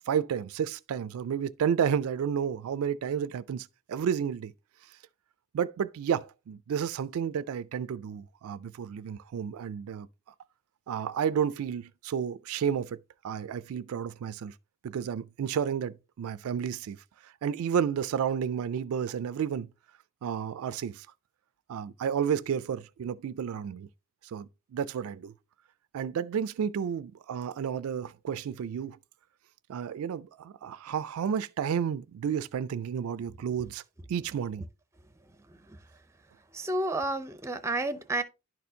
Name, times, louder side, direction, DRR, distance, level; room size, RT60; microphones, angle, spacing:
voice 1, 0.1-4.5 5.5-10.1 10.9-13.0 13.2-14.5 14.8-17.0 17.2-19.7 20.2-21.1 21.7-23.9 24.2-25.3 25.9-29.0 29.7-33.8 34.1-34.7, right 8 dB, 70° right, 0.3 m, -31 dB
voice 2, 36.5-38.2, right 2 dB, 10° right, 0.5 m, -30 dB
11.0 x 4.3 x 2.7 m
head